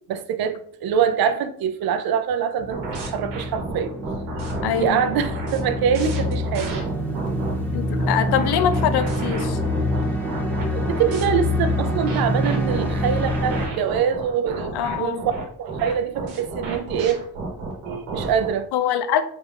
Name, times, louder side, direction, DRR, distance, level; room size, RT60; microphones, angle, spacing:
voice 1, 0.1-3.9 4.6-6.8 10.7-15.3 15.6-17.2 17.9-18.7, right 8 dB, 60° right, 0.5 m, -24 dB
sound 1, 2.6-13.7, left 1 dB, 5° left, 0.9 m, -26 dB
sound 2, 2.7-7.5 8.0-11.2 11.8-18.5, right 3 dB, 85° right, 1.1 m, -32 dB
voice 2, 4.6-5.0 7.7-9.6 14.7-15.2 18.7-19.2, left 9 dB, 70° left, 0.5 m, -23 dB
4.1 x 3.4 x 2.4 m
supercardioid pair, 65°, 42 cm